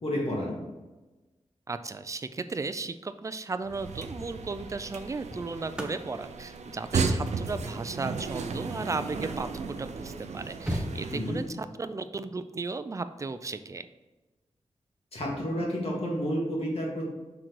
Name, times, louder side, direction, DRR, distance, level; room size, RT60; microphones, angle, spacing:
voice 1, 0.0-0.5 11.1-11.4 15.1-17.1, equal, 60° left, -3 dB, 2.0 m, -30 dB
voice 2, 1.7-13.9, right 3 dB, 25° right, 11 dB, 0.4 m, -35 dB
sound 1, 3.6-11.5, right 4 dB, 75° right, 0.5 m, -34 dB
sound 2, 5.2-9.4 10.0-10.1 10.3-11.6 13.2-13.5, equal, 10° right, 0.8 m, -40 dB
5.9 x 3.8 x 4.6 m, 1.1 s
wide cardioid pair, 100°, 12 cm